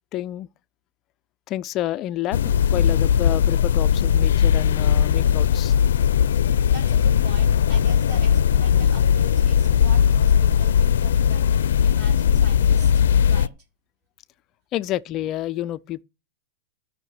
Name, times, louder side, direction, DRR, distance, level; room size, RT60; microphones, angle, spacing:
voice 1, 0.1-0.5 1.5-5.7 14.7-16.0, left 13 dB, 30° left, 0.4 m, -29 dB
sound 1, 2.3-13.5, left 8 dB, 85° left, 0.5 m, -18 dB
voice 2, 6.7-13.5, right 3 dB, 35° right, 4.2 m, -42 dB
13.0 x 5.7 x 5.9 m
supercardioid pair, 155°, 0 cm